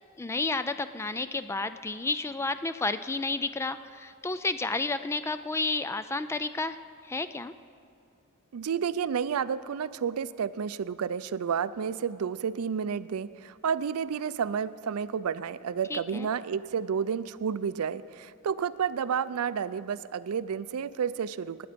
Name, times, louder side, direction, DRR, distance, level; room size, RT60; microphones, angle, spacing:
voice 1, 0.2-6.8 7.0-7.5 15.9-16.3, left 3 dB, 10° left, 12 dB, 0.3 m, -31 dB
voice 2, 8.5-21.7, right 7 dB, 85° right, 15 dB, 0.4 m, -31 dB
20.0 x 8.6 x 5.1 m, 2.5 s
head